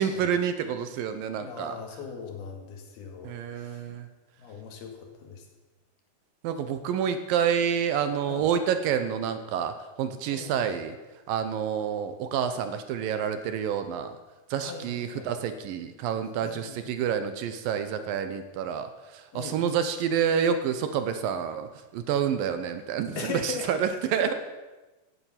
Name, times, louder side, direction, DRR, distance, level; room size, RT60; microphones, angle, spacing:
voice 1, 0.0-1.8 3.2-4.1 6.4-11.0 11.3-14.2 14.5-24.3, right 8 dB, 75° right, 10 dB, 2.3 m, -28 dB
voice 2, 1.4-3.9 4.4-5.5 8.3-8.5 10.3-10.7 14.6-15.3 16.4-16.9 19.3-19.6 23.2-24.3, left 5 dB, 75° left, 4 dB, 3.8 m, -40 dB
16.0 x 8.7 x 7.3 m, 1.2 s
omnidirectional pair, 4.5 m